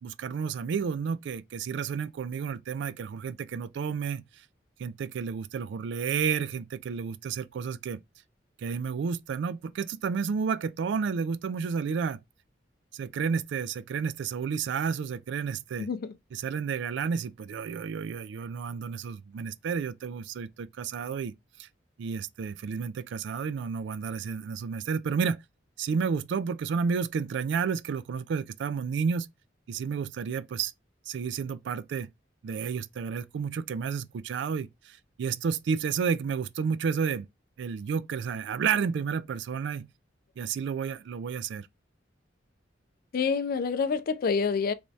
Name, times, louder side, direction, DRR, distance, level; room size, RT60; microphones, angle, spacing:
voice 1, 0.0-4.2 4.8-8.0 8.6-12.2 12.9-15.9 16.4-21.3 21.6-21.7 22.0-25.4 25.8-29.3 29.7-30.7 31.1-32.1 32.4-37.3 37.6-39.9 40.4-41.7, right 6 dB, 65° right, 0.3 m, -31 dB
voice 2, 15.8-16.2 43.1-44.7, left 5 dB, 50° left, 0.3 m, -27 dB
3.4 x 3.1 x 2.7 m
head